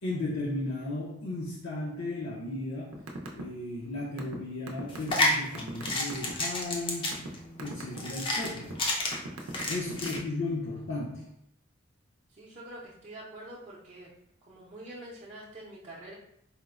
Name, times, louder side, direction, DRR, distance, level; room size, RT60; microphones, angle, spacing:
voice 1, 0.0-3.1 3.3-7.1 7.6-8.8 9.7-11.3, left 2 dB, 75° left, -6 dB, 0.5 m, -35 dB
sound 1, 2.9-3.4 3.7-6.3 6.8-7.3 7.6-8.0 8.4-8.7 9.1-10.4, right 3 dB, 85° right, 0.5 m, -39 dB
sound 2, 4.9-10.2, left 1 dB, 25° left, 0.4 m, -30 dB
voice 2, 12.3-14.1 14.5-16.1, right 1 dB, 35° right, -7 dB, 0.5 m, -46 dB
4.2 x 2.0 x 2.4 m, 0.72 s
head